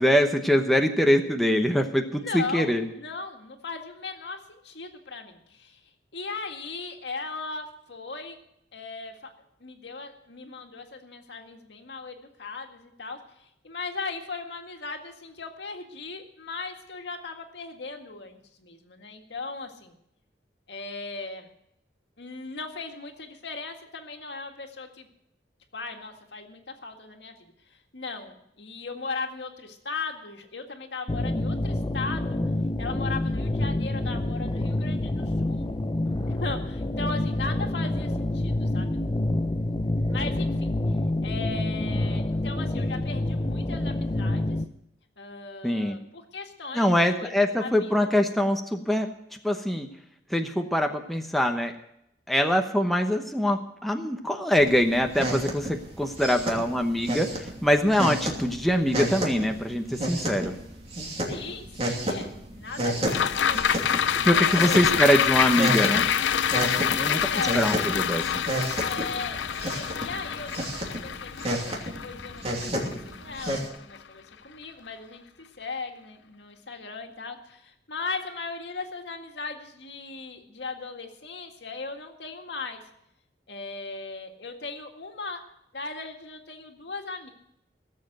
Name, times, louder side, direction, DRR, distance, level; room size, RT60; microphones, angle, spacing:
voice 1, 0.0-2.9 45.6-46.0 46.7-49.1 49.4-49.9 50.3-51.7 52.3-60.5 64.2-66.0 66.8-67.2 67.5-68.2, equal, ahead, 3 dB, 0.9 m, -23 dB
voice 2, 2.0-5.8 6.1-8.4 8.7-9.3 9.6-20.0 20.7-21.5 22.2-25.1 25.7-32.4 32.8-35.7 36.3-39.0 40.1-40.8 41.2-44.6 45.2-48.1 56.2-56.4 61.3-63.7 64.2-64.9 67.0-67.5 68.8-75.2 75.6-82.8 83.5-85.4 85.7-87.3, left 4 dB, 75° left, 4 dB, 1.9 m, -38 dB
sound 1, 31.1-44.6, left 1 dB, 25° left, 0.6 m, -27 dB
sound 2, 54.6-73.7, right 1 dB, 35° right, 2.8 m, -32 dB
sound 3, 63.1-73.6 74.0-74.1, left 8 dB, 90° left, 0.5 m, -26 dB
17.5 x 7.6 x 7.9 m, 0.77 s
head